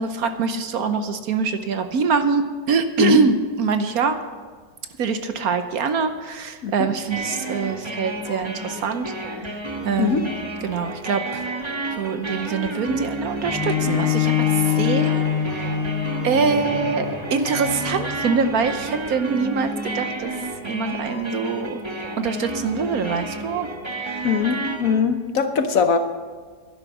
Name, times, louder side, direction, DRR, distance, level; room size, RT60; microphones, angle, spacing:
voice 1, 0.0-4.2 5.0-9.5 9.8-10.2 10.6-11.5 11.9-15.6 16.2-20.3 20.6-21.8 22.2-23.7 24.0-24.3, right 5 dB, 65° right, 9 dB, 1.2 m, -24 dB
sound 1, 7.1-25.0, right 2 dB, 20° right, 1.1 m, -31 dB
Bowed string instrument, 13.4-18.7, left 9 dB, 15° left, 2.5 m, -24 dB
voice 2, 24.2-26.0, left 6 dB, 60° left, 8 dB, 1.1 m, -21 dB
11.5 x 11.0 x 7.3 m, 1.5 s
omnidirectional pair, 1.8 m